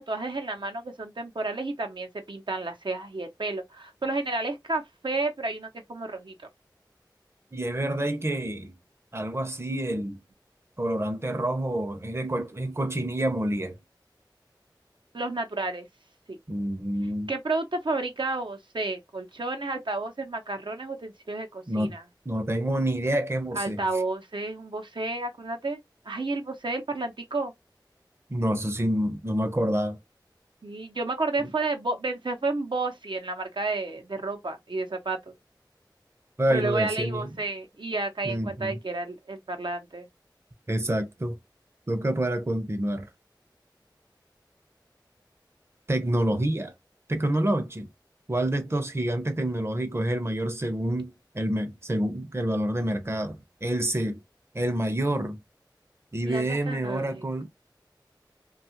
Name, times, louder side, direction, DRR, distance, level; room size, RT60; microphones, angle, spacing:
voice 1, 0.0-6.3 15.1-15.9 16.3-16.4 17.3-22.0 23.5-25.8 26.0-27.5 30.6-35.3 36.5-40.1 56.3-57.5, right 2 dB, 85° right, 0.7 m, -31 dB
voice 2, 7.5-8.7 9.1-10.2 10.8-13.8 16.5-17.3 21.7-21.9 22.3-23.8 28.3-30.0 36.4-37.3 38.2-38.8 40.7-41.4 41.9-43.1 45.9-46.7 47.1-47.9 48.3-54.2 54.5-55.4 56.1-57.5, right 1 dB, 35° right, 0.6 m, -28 dB
2.7 x 2.3 x 2.8 m
wide cardioid pair, 50°, 8 cm